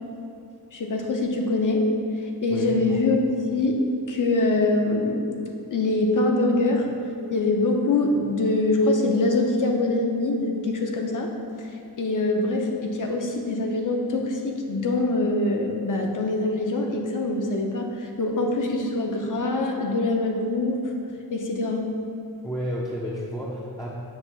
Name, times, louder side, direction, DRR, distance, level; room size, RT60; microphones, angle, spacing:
voice 1, 0.7-1.9 2.4-3.2 3.5-3.8 4.1-5.3 5.7-6.9 7.3-11.3 11.6-11.7 12.0-20.8 21.3-21.9, left 2 dB, 55° left, 2 dB, 0.9 m, -24 dB
voice 2, 2.5-3.0 22.4-23.9, equal, 10° left, -6 dB, 0.6 m, -31 dB
7.7 x 3.4 x 6.1 m, 2.6 s
wide cardioid pair, 165°, 38 cm